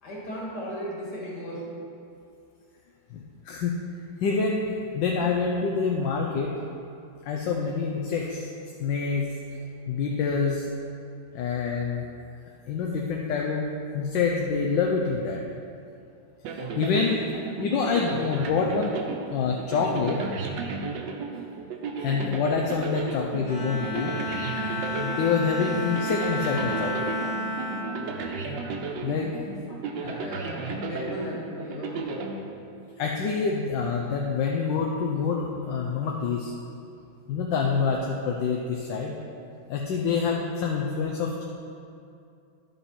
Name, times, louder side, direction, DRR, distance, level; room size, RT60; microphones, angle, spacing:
voice 1, 0.0-1.7 29.5-32.3, equal, 60° left, -4 dB, 2.3 m, -37 dB
voice 2, 3.1-6.5 7.2-8.5 8.8-9.3 9.9-10.7 11.3-12.0 12.7-13.6 13.9-15.4 16.8-17.2 17.6-19.0 19.3-20.2 22.0-24.1 24.9-27.1 29.0-29.3 33.0-36.5 37.3-39.1 39.7-41.4, left 5 dB, 75° left, -1 dB, 1.3 m, -26 dB
sound 1, 16.4-33.0, right 4 dB, 75° right, 1.4 m, -34 dB
Bowed string instrument, 23.4-29.0, left 1 dB, 25° left, 1.3 m, -32 dB
11.0 x 5.4 x 4.3 m, 2.5 s
omnidirectional pair, 2.1 m